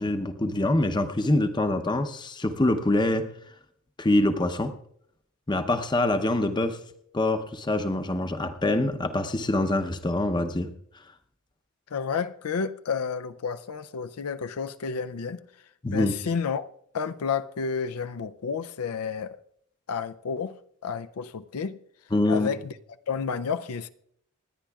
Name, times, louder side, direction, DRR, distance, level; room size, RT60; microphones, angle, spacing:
voice 1, 0.0-3.3 4.0-4.7 5.5-6.8 7.1-10.7 15.8-16.1 22.1-22.5, left 1 dB, 20° left, 0.7 m, -25 dB
voice 2, 11.9-15.4 15.9-16.7 16.9-19.4 19.9-21.8 22.3-22.7 23.1-23.9, left 6 dB, 90° left, 0.5 m, -31 dB
27.5 x 10.0 x 2.3 m
head